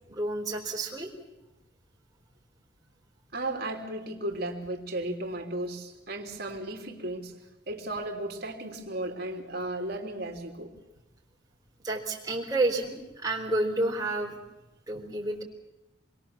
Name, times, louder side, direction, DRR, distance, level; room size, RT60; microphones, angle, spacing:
voice 1, 0.1-1.1 11.8-14.4 14.9-15.4, right 2 dB, 20° right, -1 dB, 3.8 m, -30 dB
voice 2, 3.3-7.3 7.7-10.7 14.9-15.0, right 1 dB, 50° right, 2 dB, 3.4 m, -35 dB
27.5 x 21.5 x 7.3 m, 1.0 s
head